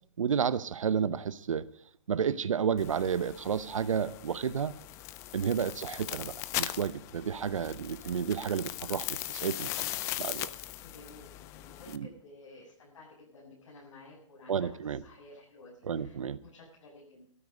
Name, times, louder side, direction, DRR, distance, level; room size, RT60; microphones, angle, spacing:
voice 1, 0.2-1.7 2.1-4.7 5.3-6.3 6.6-9.8 10.2-10.5 11.9-12.1 14.5-15.0 15.8-16.4, right 7 dB, 90° right, 15 dB, 0.8 m, -31 dB
sound 1, 2.8-12.0, left 15 dB, 20° left, 0.4 m, -39 dB
voice 2, 5.8-6.1 10.8-17.3, left 2 dB, 70° left, -5 dB, 7.3 m, -53 dB
13.5 x 13.0 x 5.3 m, 0.65 s
hypercardioid pair, 155°, 16 cm